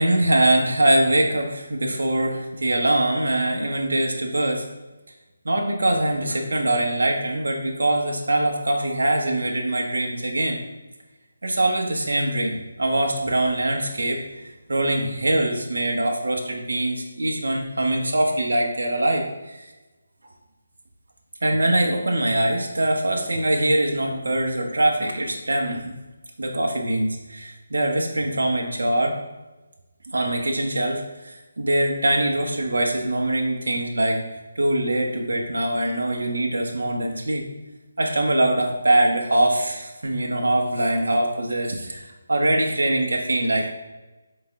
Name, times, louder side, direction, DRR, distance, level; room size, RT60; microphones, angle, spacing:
voice 1, 0.0-4.6 5.4-10.6 11.4-14.2 14.7-19.7 21.4-25.9 26.4-29.2 30.1-34.3 34.5-37.4 38.0-43.7, right 1 dB, 75° right, 1 dB, 1.2 m, -23 dB
6.9 x 4.4 x 3.7 m, 1.1 s
figure-of-eight pair, 155°, 0 cm